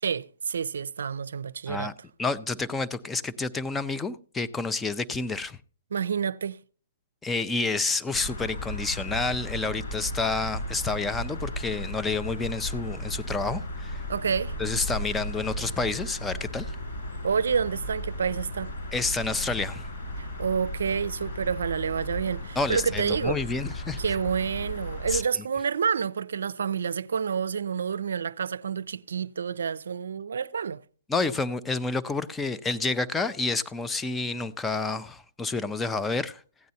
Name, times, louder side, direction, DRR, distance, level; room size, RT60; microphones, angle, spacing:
voice 1, 0.0-1.9 5.9-6.6 14.1-14.6 17.2-18.7 20.2-23.4 24.0-30.8, right 6 dB, 75° right, 0.5 m, -28 dB
voice 2, 2.2-5.6 7.2-14.0 14.6-16.8 18.9-19.9 22.6-24.2 25.1-25.5 31.1-36.4, left 3 dB, 10° left, 0.5 m, -29 dB
sound 1, 8.1-25.2, equal, 55° left, 4.7 m, -35 dB
16.0 x 9.3 x 2.8 m
hypercardioid pair, 140°, 0 cm